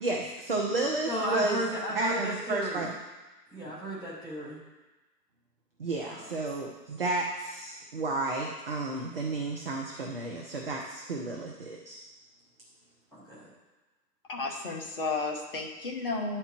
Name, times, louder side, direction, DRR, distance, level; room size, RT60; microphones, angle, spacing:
voice 1, 0.0-1.6 1.9-2.9 5.8-12.0, right 2 dB, 35° right, 0 dB, 0.7 m, -32 dB
voice 2, 1.0-2.9 3.5-4.6 6.1-6.2 11.3-11.4 13.1-13.5, equal, ahead, -17 dB, 0.7 m, -34 dB
voice 3, 14.3-16.4, left 3 dB, 35° left, 0 dB, 1.3 m, -33 dB
9.5 x 4.4 x 5.9 m, 1.1 s
figure-of-eight pair, 140°, 49 cm